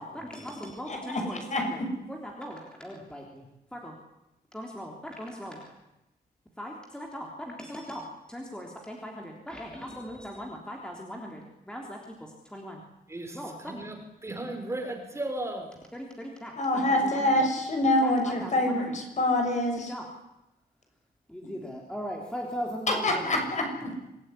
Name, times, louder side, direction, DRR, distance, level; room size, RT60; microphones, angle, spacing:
voice 1, 0.0-1.8 2.1-3.9 4.5-5.7 6.6-12.8 13.3-13.8 15.9-17.4 18.0-19.0 19.9-20.0 21.3-23.4 23.8-23.9, equal, 5° left, 0 dB, 3.4 m, -39 dB
voice 2, 0.9-1.9 16.6-19.9 22.9-23.6, left 1 dB, 45° left, 3 dB, 6.5 m, -26 dB
voice 3, 13.1-14.0 14.2-15.7, right 1 dB, 15° right, 4 dB, 4.4 m, -35 dB
26.0 x 18.5 x 9.9 m, 0.94 s
wide cardioid pair, 165°, 17 cm